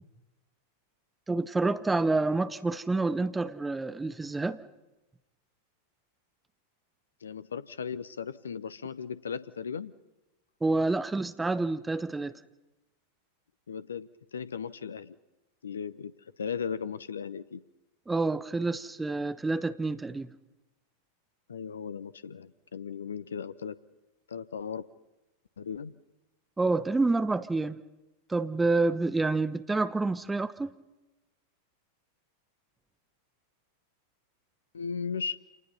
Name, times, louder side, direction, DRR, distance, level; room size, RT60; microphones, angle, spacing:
voice 1, 1.3-4.6 10.6-12.3 18.1-20.3 26.6-27.8 28.3-30.7, right 3 dB, 10° right, 13 dB, 0.9 m, -28 dB
voice 2, 7.2-9.9 13.7-15.2 15.6-16.1 16.4-17.6 21.5-23.8 24.3-24.8 25.6-25.9 34.7-35.4, left 6 dB, 70° left, 17 dB, 0.8 m, -36 dB
27.5 x 19.5 x 5.6 m, 1.0 s
figure-of-eight pair, 90°, 0 cm